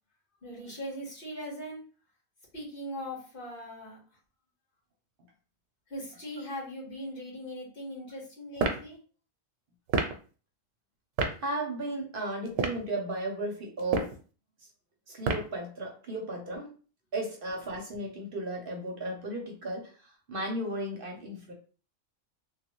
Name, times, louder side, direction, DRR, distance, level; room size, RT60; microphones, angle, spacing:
voice 1, 0.4-1.8 2.5-4.0 5.9-9.0, equal, 45° left, -4 dB, 1.6 m, -40 dB
sound 1, 8.6-8.9 9.9-10.2 11.2-11.4 12.5-12.9 13.8-14.2 15.2-15.6, right 4 dB, 85° right, 1.0 m, -28 dB
voice 2, 11.4-14.1 15.1-16.7 17.1-21.5, right 1 dB, 55° right, 1 dB, 0.8 m, -35 dB
3.1 x 2.3 x 2.9 m, 0.38 s
omnidirectional pair, 1.3 m